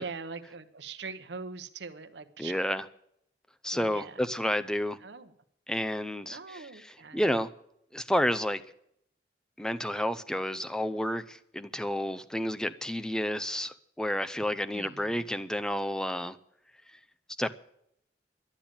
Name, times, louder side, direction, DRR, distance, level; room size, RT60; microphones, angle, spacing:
voice 1, 0.0-2.6 3.7-4.2 5.0-5.3 6.3-7.4 14.7-15.3, right 4 dB, 70° right, 0.9 m, -42 dB
voice 2, 2.4-2.9 3.6-5.0 5.7-7.5 7.9-8.6 9.6-16.4 16.9-17.0 17.4-17.5, equal, 5° left, 0.5 m, -30 dB
12.0 x 8.7 x 8.8 m
head